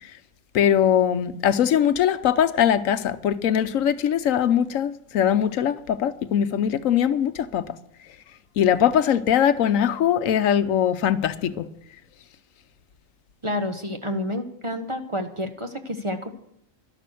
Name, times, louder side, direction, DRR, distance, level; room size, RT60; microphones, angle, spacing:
voice 1, 0.5-7.7 8.6-11.7, left 9 dB, 80° left, 1.1 m, -21 dB
voice 2, 13.4-16.3, left 1 dB, 25° right, 1.0 m, -29 dB
12.0 x 11.0 x 6.3 m
omnidirectional pair, 1.4 m